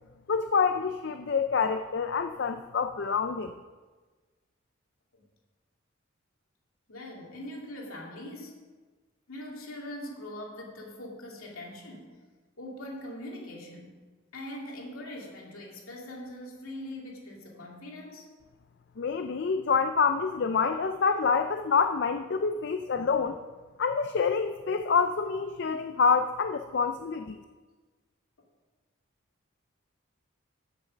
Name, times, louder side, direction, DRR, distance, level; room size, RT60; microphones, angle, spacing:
voice 1, 0.3-3.5 19.0-23.4 23.8-27.4, left 5 dB, 55° left, 8 dB, 0.4 m, -27 dB
voice 2, 6.9-8.6 9.3-12.2 12.6-13.9 14.3-18.3 22.9-23.3, left 1 dB, 85° left, -1 dB, 2.5 m, -42 dB
14.5 x 6.6 x 5.2 m, 1.3 s
head